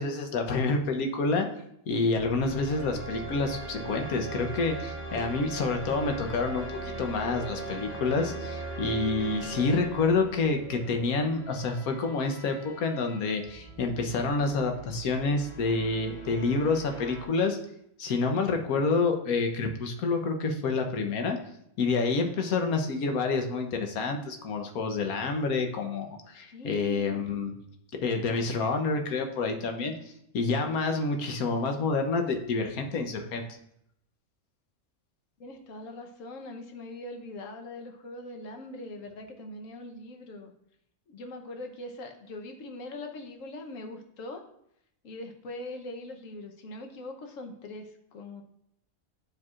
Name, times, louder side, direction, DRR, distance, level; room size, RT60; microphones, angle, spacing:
voice 1, 0.0-1.5 1.9-17.6 18.0-21.4 21.8-27.5 28.0-29.9 30.3-33.4, left 3 dB, 90° left, 4 dB, 1.3 m, -28 dB
sound 1, 2.1-17.2, right 3 dB, 30° left, 1.5 m, -40 dB
voice 2, 18.6-19.0 26.5-27.3 35.4-40.5 41.1-44.4 45.0-48.4, left 2 dB, 65° left, 4 dB, 1.2 m, -42 dB
12.0 x 4.6 x 2.4 m, 0.74 s
omnidirectional pair, 1.5 m